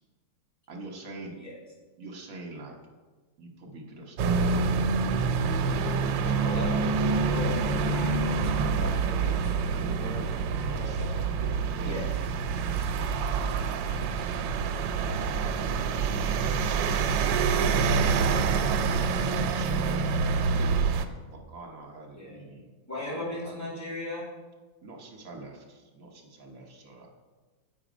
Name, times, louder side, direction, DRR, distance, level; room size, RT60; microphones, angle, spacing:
voice 1, 0.7-1.4 2.0-2.8 3.4-5.0 7.4-8.2 10.6-11.1 11.7-12.1 12.6-14.7 15.3-20.9 21.3-22.7 23.1-23.7 24.8-27.1, right 2 dB, 50° right, 1 dB, 1.3 m, -46 dB
sound 1, 4.2-21.0, right 5 dB, 85° right, 1.3 m, -26 dB
voice 2, 6.2-6.8 7.1-11.2 11.8-12.0 17.6-18.1 22.1-22.4 22.9-24.3, left 1 dB, 10° left, -7 dB, 2.6 m, -38 dB
8.3 x 4.8 x 5.1 m, 1.3 s
omnidirectional pair, 2.0 m